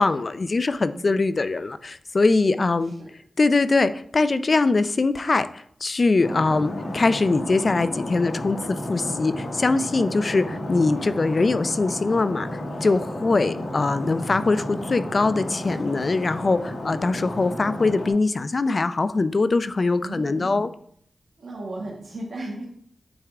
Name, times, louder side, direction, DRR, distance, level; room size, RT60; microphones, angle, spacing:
voice 1, 0.0-2.9 3.4-20.7, left 3 dB, 40° left, 13 dB, 0.4 m, -22 dB
voice 2, 0.9-1.3 2.6-3.1 20.0-20.7 21.4-22.6, right 2 dB, 75° right, -4 dB, 1.3 m, -36 dB
Stream, 6.2-18.1, left 1 dB, 75° left, 1.5 m, -32 dB
8.6 x 3.6 x 3.5 m, 0.64 s
wide cardioid pair, 105°, 0 cm